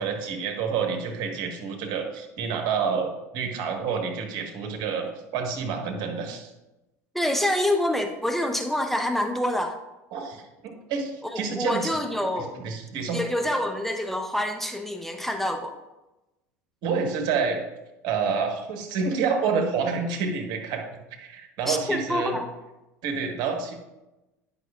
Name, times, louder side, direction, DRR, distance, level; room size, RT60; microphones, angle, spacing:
voice 1, 0.0-5.1 5.3-6.5 10.1-12.0 12.4-13.2 16.8-17.6 18.0-20.8 21.1-22.4 23.0-23.8, right 5 dB, 55° right, 3 dB, 1.2 m, -28 dB
voice 2, 7.1-9.8 11.3-12.6 13.1-15.7 21.7-22.5, left 1 dB, 5° left, 5 dB, 0.6 m, -26 dB
9.8 x 5.6 x 2.4 m, 1.0 s
hypercardioid pair, 70°, 9 cm